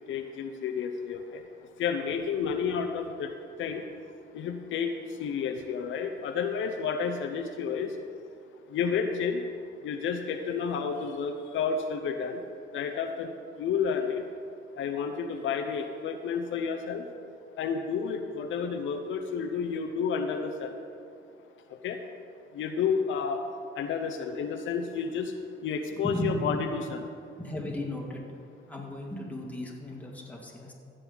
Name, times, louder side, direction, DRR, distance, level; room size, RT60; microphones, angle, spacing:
voice 1, 0.1-1.4 1.8-3.3 3.6-3.8 4.3-4.9 5.2-7.9 8.7-9.4 9.8-12.4 12.7-13.3 13.6-14.2 14.8-17.0 17.6-20.8 21.8-22.0 22.5-23.4 23.8-25.3 25.6-27.0, left 6 dB, 75° left, 6 dB, 0.7 m, -30 dB
voice 2, 26.0-26.6 27.4-28.2 28.7-30.7, equal, 5° left, -2 dB, 2.0 m, -35 dB
15.0 x 7.6 x 4.0 m, 2.4 s
cardioid pair, 90°, 20 cm